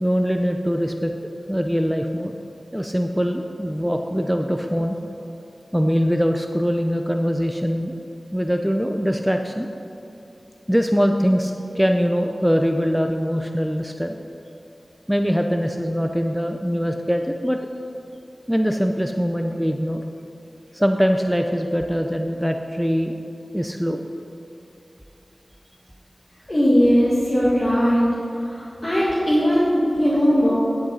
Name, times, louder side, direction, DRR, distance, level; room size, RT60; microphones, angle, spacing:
voice 1, 0.0-1.1 1.5-2.3 2.7-5.0 5.7-8.0 8.3-9.7 10.7-14.2 15.1-17.6 18.5-20.0 20.7-23.2 23.5-24.0, equal, 5° right, 4 dB, 0.5 m, -22 dB
voice 2, 26.5-28.1 28.4-30.5, equal, 35° left, -9 dB, 1.9 m, -19 dB
11.5 x 7.9 x 4.1 m, 2.8 s
wide cardioid pair, 65°, 0 cm